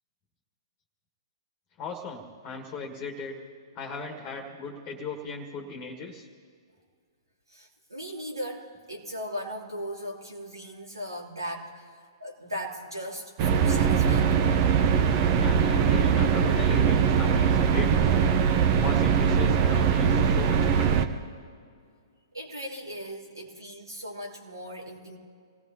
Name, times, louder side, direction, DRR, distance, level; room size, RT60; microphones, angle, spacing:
voice 1, 1.8-3.4 3.7-6.3 15.4-18.2 18.8-21.0, left 3 dB, 25° left, 3 dB, 1.7 m, -37 dB
voice 2, 7.5-14.5 22.3-25.2, equal, 80° right, -1 dB, 2.9 m, -38 dB
sound 1, 13.4-21.1, right 7 dB, 35° right, 0.9 m, -22 dB
27.0 x 18.5 x 2.9 m, 2.1 s
figure-of-eight pair, 115°, 2 cm